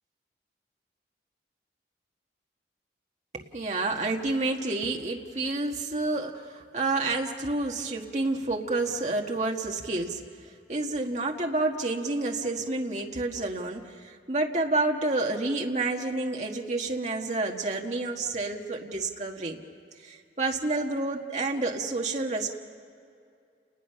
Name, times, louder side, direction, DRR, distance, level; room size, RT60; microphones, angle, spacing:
voice 1, 3.3-10.2 10.7-19.6 20.0-22.5, right 2 dB, 40° right, 1 dB, 1.6 m, -29 dB
30.0 x 20.5 x 5.7 m, 2.4 s
head